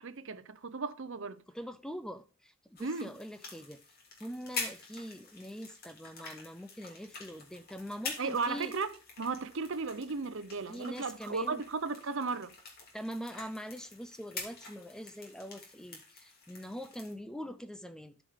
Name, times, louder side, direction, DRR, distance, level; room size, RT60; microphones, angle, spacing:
voice 1, 0.0-1.4 2.8-3.1 8.2-12.5, right 4 dB, 60° right, 0.8 m, -35 dB
voice 2, 1.5-3.8 4.2-8.8 10.7-11.6 12.9-18.2, equal, 5° left, 0.4 m, -43 dB
sound 1, 2.8-17.1, left 4 dB, 45° left, 2.9 m, -46 dB
13.5 x 5.1 x 3.7 m
head